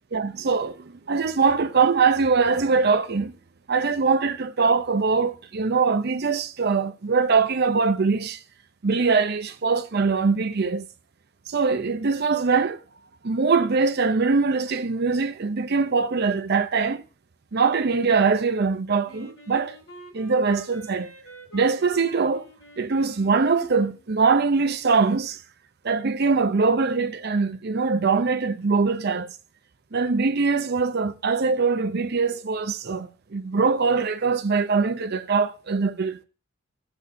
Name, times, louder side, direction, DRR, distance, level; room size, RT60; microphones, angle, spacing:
voice 1, 0.1-3.3 3.7-8.4 8.8-10.8 11.5-12.8 13.2-17.0 17.5-19.8 20.1-21.1 21.5-22.5 22.8-25.4 25.8-29.3 29.9-36.2, right 4 dB, 55° right, 0.7 m, -22 dB
Wind instrument woodwind instrument, 19.0-24.1, right 1 dB, 75° left, 2.4 m, -46 dB
17.0 x 7.0 x 2.7 m
head